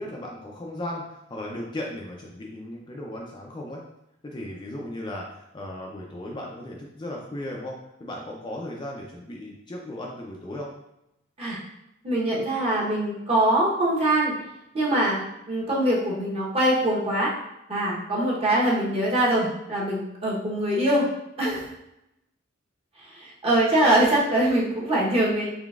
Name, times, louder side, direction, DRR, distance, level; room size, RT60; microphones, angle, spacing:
voice 1, 0.0-3.9 4.2-10.7, left 1 dB, 20° left, -1 dB, 0.4 m, -36 dB
voice 2, 12.0-14.3 14.7-15.2 15.5-17.3 17.7-21.1 21.4-21.7 23.0-25.5, right 1 dB, 30° right, -5 dB, 1.0 m, -23 dB
3.7 x 3.3 x 2.4 m, 0.86 s
head